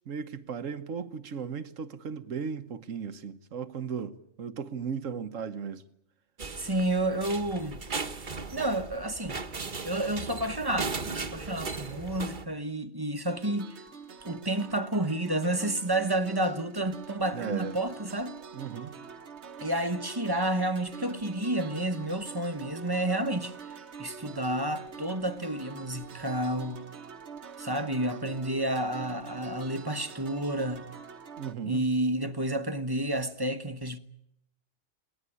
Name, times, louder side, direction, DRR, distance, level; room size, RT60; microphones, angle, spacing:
voice 1, 0.1-5.8 17.3-17.8 18.5-19.0 31.4-31.8, right 6 dB, 75° right, 1.5 m, -36 dB
sound 1, 6.4-12.4, right 4 dB, 40° right, 1.3 m, -37 dB
voice 2, 6.6-7.8 8.5-13.8 14.2-18.4 19.6-23.5 24.0-26.9 27.6-30.9 31.6-34.0, right 1 dB, 20° right, 1.1 m, -30 dB
sound 2, 13.3-31.5, right 5 dB, 60° right, 1.4 m, -45 dB
22.5 x 18.5 x 9.9 m
omnidirectional pair, 1.3 m